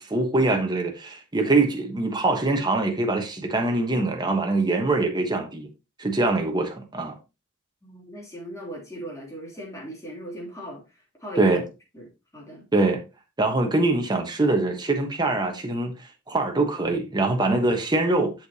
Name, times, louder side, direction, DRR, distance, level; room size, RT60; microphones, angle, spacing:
voice 1, 0.0-5.7 6.0-7.1 11.4-11.6 12.7-13.0 13.4-18.3, right 2 dB, 20° right, 1.2 m, -23 dB
voice 2, 7.8-11.5 11.9-12.1 12.3-12.6, right 1 dB, 15° left, 3.1 m, -38 dB
7.8 x 6.6 x 2.9 m
head